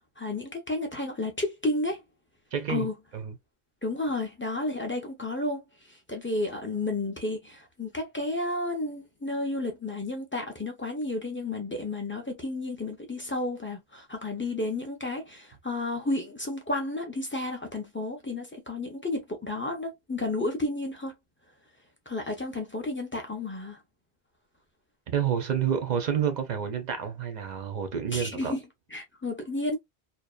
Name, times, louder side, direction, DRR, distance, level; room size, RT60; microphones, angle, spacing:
voice 1, 0.2-2.0 2.7-2.9 3.8-21.1 22.1-23.8 28.1-28.6 28.9-29.8, left 2 dB, 20° left, 0.4 m, -32 dB
voice 2, 2.5-2.9 3.1-3.4 25.1-28.5, right 8 dB, 55° right, 0.5 m, -29 dB
2.7 x 2.1 x 2.2 m
omnidirectional pair, 1.1 m